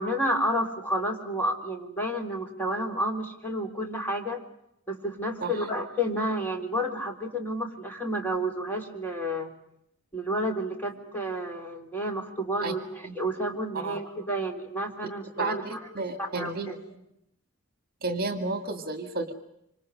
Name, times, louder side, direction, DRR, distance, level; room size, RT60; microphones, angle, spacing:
voice 1, 0.0-4.4 4.9-9.5 10.1-16.8, equal, 10° left, 2 dB, 3.7 m, -30 dB
voice 2, 15.4-16.7 18.0-19.3, right 3 dB, 45° right, 7 dB, 2.1 m, -32 dB
26.5 x 26.0 x 6.5 m, 0.79 s
head